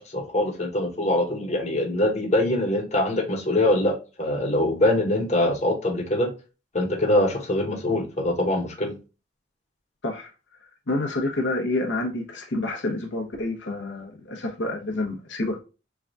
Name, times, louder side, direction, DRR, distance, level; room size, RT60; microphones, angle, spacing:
voice 1, 0.0-6.3 6.7-9.0, left 1 dB, 40° left, 0.9 m, -23 dB
voice 2, 10.9-15.6, left 2 dB, 85° left, 1.0 m, -28 dB
4.6 x 2.3 x 2.5 m
head